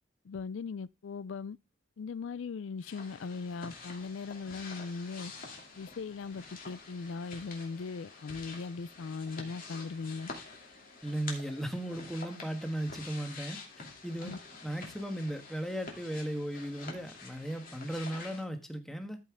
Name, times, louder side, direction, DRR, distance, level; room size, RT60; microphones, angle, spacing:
voice 1, 0.2-1.6 2.0-5.3 5.8-10.3 14.2-14.4, left 4 dB, 70° left, 0.4 m, -39 dB
sound 1, 2.8-18.4, left 4 dB, 45° left, 2.7 m, -48 dB
voice 2, 11.0-14.3 14.6-19.2, right 1 dB, ahead, 1.4 m, -36 dB
13.5 x 5.5 x 3.6 m
head